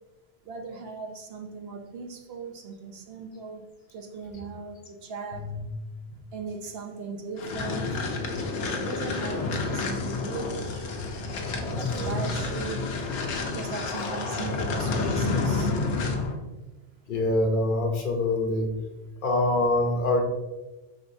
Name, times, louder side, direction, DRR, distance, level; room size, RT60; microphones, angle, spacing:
voice 1, 0.4-5.5 6.3-8.1 8.7-10.9 11.7-12.9 13.5-15.8, right 4 dB, 70° right, 4 dB, 0.8 m, -38 dB
sound 1, 7.4-16.4, left 3 dB, 90° left, 0.9 m, -29 dB
voice 2, 11.7-12.3 17.1-18.7 19.2-20.2, left 2 dB, 55° left, 3 dB, 0.7 m, -25 dB
4.9 x 3.3 x 2.6 m, 1.1 s
omnidirectional pair, 1.1 m